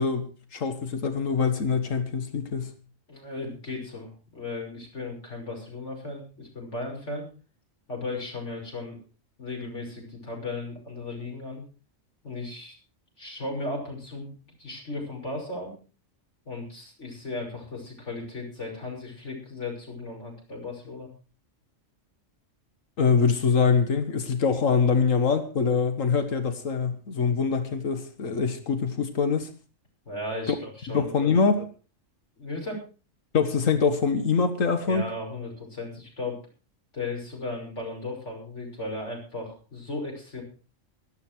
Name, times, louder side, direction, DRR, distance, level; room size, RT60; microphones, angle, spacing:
voice 1, 0.0-2.7 23.0-29.5 30.5-30.6 30.9-31.7 33.3-35.0, left 5 dB, 85° left, 8 dB, 1.9 m, -24 dB
voice 2, 3.1-7.3 7.9-9.0 9.4-11.6 12.2-12.8 13.2-14.3 14.6-15.7 16.5-21.1 30.1-31.3 32.4-32.8 34.9-36.4 36.9-40.4, left 2 dB, 65° left, 0 dB, 6.3 m, -36 dB
17.0 x 12.5 x 4.6 m, 0.35 s
omnidirectional pair, 1.3 m